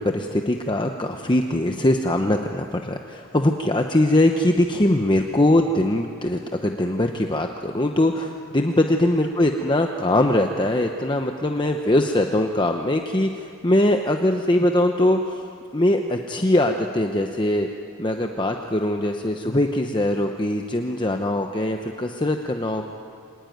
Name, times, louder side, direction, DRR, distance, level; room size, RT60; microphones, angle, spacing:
voice 1, 0.0-15.4 15.7-17.7 18.0-22.8, left 1 dB, 20° left, 4 dB, 0.8 m, -22 dB
25.5 x 19.5 x 9.4 m, 2.4 s
head